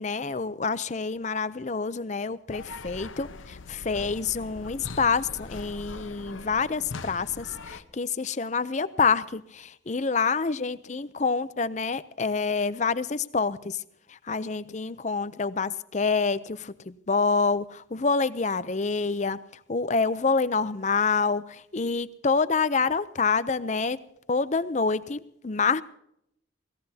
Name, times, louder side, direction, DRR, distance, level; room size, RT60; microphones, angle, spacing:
voice 1, 0.0-13.8 14.1-19.4 19.7-24.0 24.3-25.8, left 4 dB, 35° left, 15 dB, 0.5 m, -27 dB
sound 1, 2.5-7.8, left 3 dB, 80° left, 0.9 m, -41 dB
Bowed string instrument, 4.1-9.1, right 2 dB, 40° right, 2.9 m, -60 dB
24.0 x 17.5 x 2.8 m, 0.76 s
head